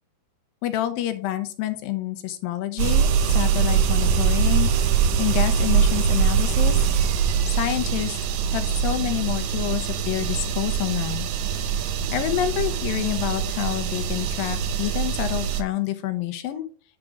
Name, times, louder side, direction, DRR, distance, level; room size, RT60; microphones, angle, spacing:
voice 1, 0.6-4.7 5.2-6.8 7.5-8.2 8.5-11.3 12.1-16.7, left 13 dB, 80° left, 9 dB, 2.3 m, -28 dB
sound 1, 2.8-15.6, right 7 dB, 80° right, 1.6 m, -23 dB
sound 2, 3.4-9.5, equal, 50° right, 1.7 m, -42 dB
9.8 x 3.7 x 4.9 m, 0.41 s
omnidirectional pair, 4.3 m